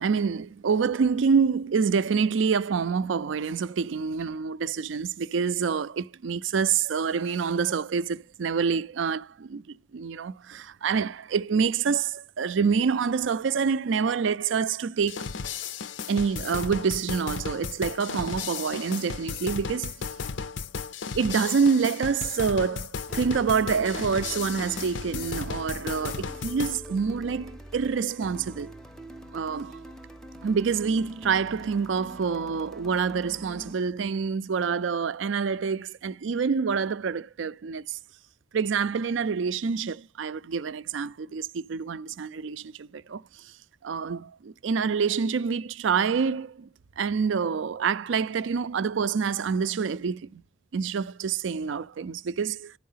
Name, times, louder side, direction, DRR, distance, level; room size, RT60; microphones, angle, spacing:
voice 1, 0.0-15.3 16.1-20.1 21.1-28.7 29.3-29.8 30.4-38.0 38.5-43.5 43.8-46.7 47.0-50.4 50.7-52.7, right 6 dB, 85° right, 0.4 m, -27 dB
sound 1, 15.1-26.8, left 5 dB, 80° left, 0.5 m, -35 dB
sound 2, 23.1-33.7, equal, 5° left, 0.5 m, -44 dB
12.0 x 4.7 x 5.6 m
head